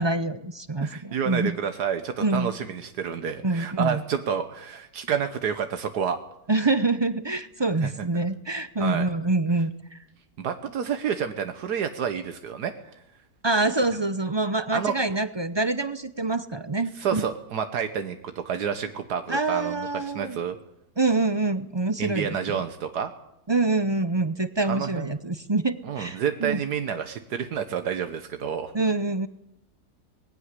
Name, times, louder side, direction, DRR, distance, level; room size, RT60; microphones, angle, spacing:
voice 1, 0.0-1.6 2.2-2.5 3.4-4.0 6.5-10.0 13.4-17.2 19.3-20.4 21.0-22.6 23.5-26.6 28.7-29.3, right 2 dB, 35° right, 12 dB, 0.4 m, -26 dB
voice 2, 0.8-6.2 7.8-7.9 8.8-9.1 10.4-12.7 14.7-14.9 17.0-20.6 22.0-23.1 24.7-25.1 25.8-28.7, right 7 dB, 80° right, 8 dB, 1.6 m, -29 dB
19.5 x 16.0 x 9.7 m, 0.80 s
omnidirectional pair, 1.7 m